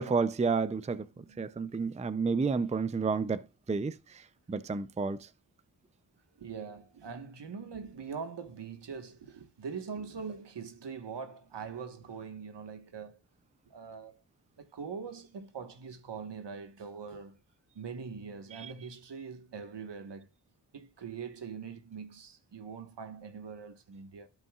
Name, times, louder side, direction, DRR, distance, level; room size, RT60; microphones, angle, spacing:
voice 1, 0.0-1.0 1.4-3.4 3.7-4.0 4.5-5.2 18.6-18.7, right 4 dB, 15° right, 0.5 m, -30 dB
voice 2, 1.1-1.7 6.4-13.2 13.7-14.2 14.6-17.4 17.7-20.3 20.7-24.3, right 6 dB, 75° right, 1.4 m, -43 dB
15.0 x 5.4 x 2.4 m
wide cardioid pair, 85°, 42 cm